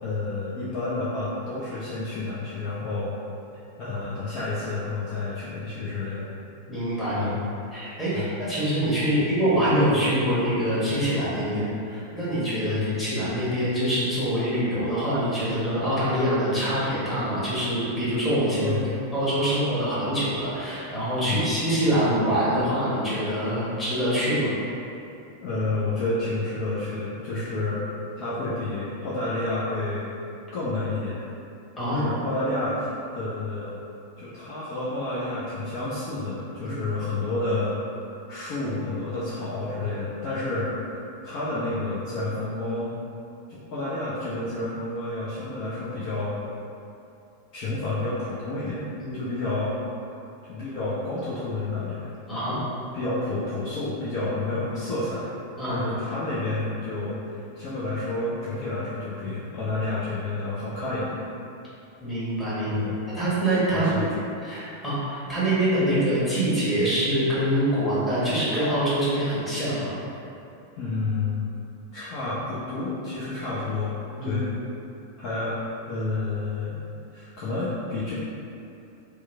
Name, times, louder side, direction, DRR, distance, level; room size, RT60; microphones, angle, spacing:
voice 1, 0.0-3.1 3.8-6.3 7.1-7.5 8.1-8.4 9.2-9.3 11.5-11.7 12.6-12.9 18.6-19.0 21.2-21.5 25.4-27.8 28.2-30.1 30.5-31.2 31.9-33.8 34.2-37.8 38.3-42.9 43.5-46.4 47.5-48.8 49.1-49.7 50.5-52.0 52.9-55.3 55.6-61.2 62.6-63.0 63.7-64.1 68.2-68.4 70.8-71.4 71.9-73.9 74.2-74.5 75.2-75.5 75.9-76.8 77.1-78.1, left 2 dB, 40° left, -9 dB, 0.5 m, -30 dB
voice 2, 6.7-7.3 7.7-11.6 12.1-18.8 19.1-24.5 31.8-32.3 36.6-36.7 49.0-49.1 52.3-52.6 55.6-55.8 62.0-62.8 63.1-64.0 64.4-69.9 74.2-74.3, right 1 dB, 15° left, -11 dB, 1.3 m, -25 dB
3.0 x 2.2 x 3.3 m, 2.7 s
figure-of-eight pair, 90°, 0 cm